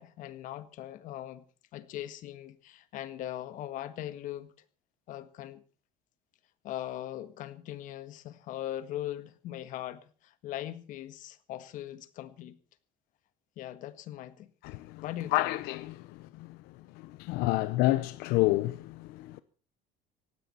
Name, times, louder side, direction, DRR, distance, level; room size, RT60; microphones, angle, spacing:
voice 1, 0.0-1.4 1.7-4.5 5.1-5.6 6.6-12.6 13.6-14.5 15.0-15.5, left 13 dB, 60° left, 1.6 m, -40 dB
voice 2, 14.6-19.4, left 18 dB, 90° left, 0.8 m, -30 dB
18.0 x 16.5 x 4.4 m
cardioid pair, 160°, 15 cm